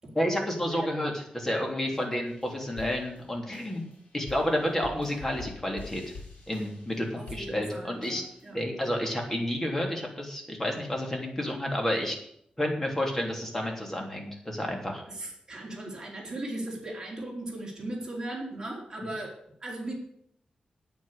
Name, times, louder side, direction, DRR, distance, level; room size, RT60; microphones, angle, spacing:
voice 1, 0.1-3.8 4.1-6.0 6.5-8.2 8.5-12.2 12.6-15.0 19.0-19.1, left 1 dB, 15° left, 1 dB, 3.3 m, -30 dB
sound 1, 2.3-8.5, left 3 dB, 75° left, 5.3 m, -47 dB
voice 2, 7.2-8.6 15.1-19.3 19.6-19.9, right 1 dB, 25° right, -2 dB, 4.1 m, -38 dB
9.4 x 9.3 x 8.2 m, 0.70 s
wide cardioid pair, 135°, 2 cm